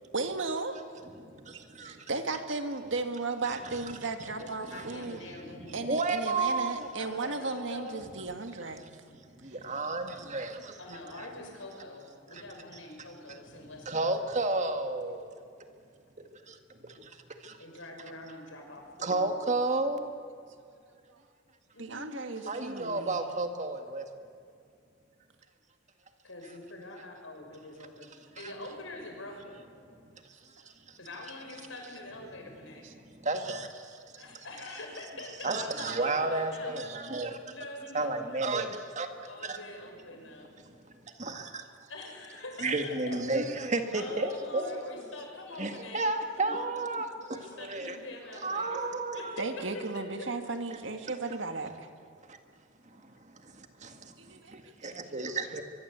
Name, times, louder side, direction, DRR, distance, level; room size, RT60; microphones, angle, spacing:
voice 1, 0.1-0.8 1.8-5.2 5.7-8.9 21.8-23.2 32.8-32.9 49.4-51.9 54.2-54.9, right 3 dB, 65° right, 7 dB, 2.0 m, -35 dB
voice 2, 1.2-2.1 4.2-4.3 4.7-6.9 9.3-10.8 11.2-11.3 12.3-12.4 13.9-15.4 16.2-16.6 16.8-17.2 17.4-17.6 19.0-20.1 22.5-24.1 28.4-28.5 30.1-31.0 33.0-34.2 35.4-37.5 37.9-39.6 40.6-41.6 42.6-44.7 45.6-48.0 48.3-49.4 50.7-50.8 51.1-51.4 52.3-52.4 52.9-55.6, right 3 dB, 40° right, 6 dB, 1.9 m, -33 dB
voice 3, 4.3-5.9 7.0-8.0 10.8-14.1 17.6-19.4 21.7-23.0 26.2-29.6 31.0-32.9 34.1-36.8 37.5-38.6 39.2-40.6 41.9-43.4 43.9-46.1 46.4-46.7 47.3-48.8 49.1-49.4 49.7-50.3 55.5-55.6, left 2 dB, 80° left, 2 dB, 6.3 m, -44 dB
23.5 x 23.5 x 8.2 m, 2.4 s
head